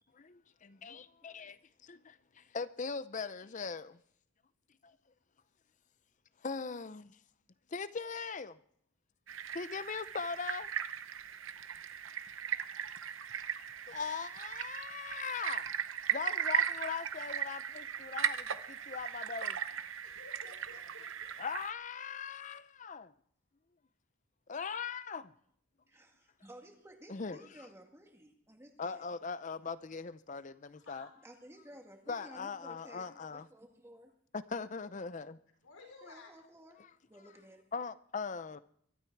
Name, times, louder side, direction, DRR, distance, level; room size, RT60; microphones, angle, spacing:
voice 1, 0.1-4.0 6.4-7.2 7.7-8.6 9.5-10.7 13.9-15.7 16.1-19.6 21.4-23.1 24.5-25.3 27.1-27.4 28.8-31.1 32.1-33.5 34.3-35.4 37.7-38.6, left 5 dB, 35° left, 0.5 m, -40 dB
sound 1, 9.3-21.7, right 8 dB, 65° right, 0.9 m, -37 dB
voice 2, 20.0-21.4 30.8-31.1 35.6-36.3, left 3 dB, 80° left, 4.8 m, -54 dB
voice 3, 25.9-29.1 31.2-34.1 36.0-36.8 37.1-37.6, equal, 10° right, 1.9 m, -55 dB
23.5 x 12.5 x 4.6 m
head